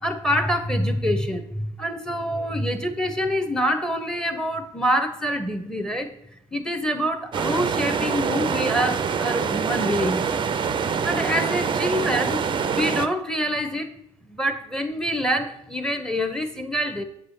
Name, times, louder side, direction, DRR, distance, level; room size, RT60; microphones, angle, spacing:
voice 1, 0.0-6.1 6.5-10.2 11.0-12.4 12.7-13.9 14.3-17.0, equal, 5° left, 8 dB, 1.0 m, -26 dB
sound 1, 7.3-13.1, right 6 dB, 30° right, 0.6 m, -25 dB
7.9 x 6.3 x 2.8 m, 0.79 s
figure-of-eight pair, 60°, 18 cm